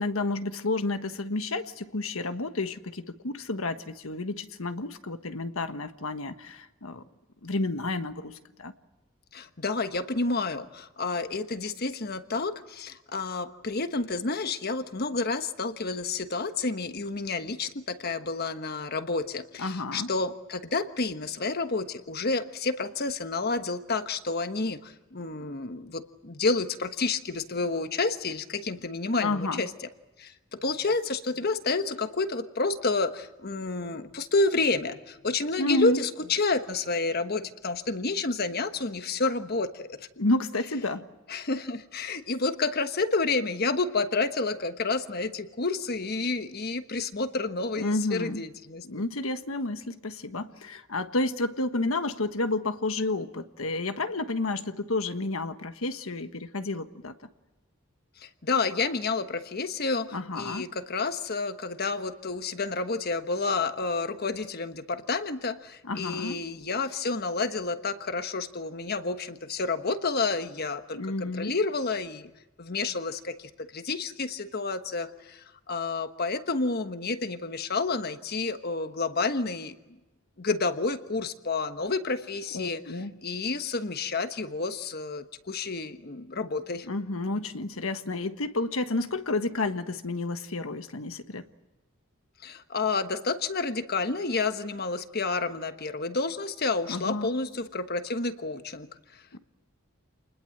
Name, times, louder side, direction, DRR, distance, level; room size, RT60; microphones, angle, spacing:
voice 1, 0.0-7.0 7.4-8.7 19.6-20.1 29.2-29.6 35.6-36.0 40.2-41.1 47.8-48.4 48.8-57.1 60.1-60.6 65.8-66.4 70.9-71.6 82.5-83.1 86.8-91.4 96.9-97.3 99.3-99.4, left 2 dB, 85° left, 9 dB, 1.4 m, -30 dB
voice 2, 9.3-29.7 30.2-39.9 41.3-48.8 58.2-72.3 72.6-79.8 80.4-82.8 83.2-86.9 92.4-98.9 99.1-99.2, left 3 dB, 50° left, 9 dB, 1.3 m, -30 dB
28.0 x 20.5 x 7.9 m, 1.1 s
head